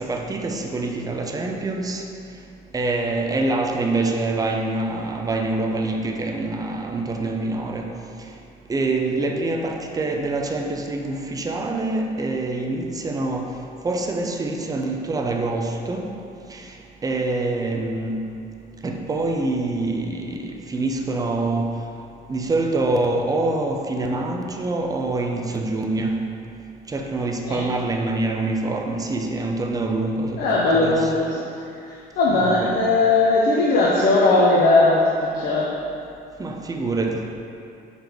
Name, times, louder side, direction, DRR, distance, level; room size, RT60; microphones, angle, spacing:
voice 1, 0.0-2.0 2.7-7.9 8.7-13.5 13.8-16.0 16.5-16.6 17.0-18.2 18.8-21.7 22.3-26.2 26.9-31.1 32.3-32.8 36.4-37.3, right 2 dB, 20° right, 2 dB, 0.6 m, -25 dB
voice 2, 30.4-31.4 32.2-35.7, left 2 dB, 65° left, -6 dB, 0.8 m, -18 dB
5.1 x 4.1 x 4.5 m, 2.6 s
cardioid pair, 110°, 17 cm